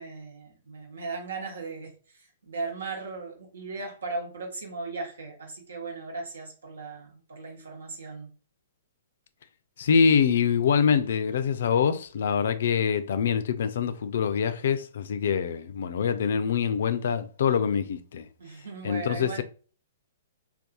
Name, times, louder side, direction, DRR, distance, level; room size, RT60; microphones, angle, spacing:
voice 1, 0.0-8.3 18.4-19.4, right 3 dB, 75° right, 1.2 m, -37 dB
voice 2, 9.8-18.3 18.8-19.4, left 7 dB, 65° left, 0.4 m, -25 dB
2.7 x 2.3 x 3.6 m
figure-of-eight pair, 120°, 0 cm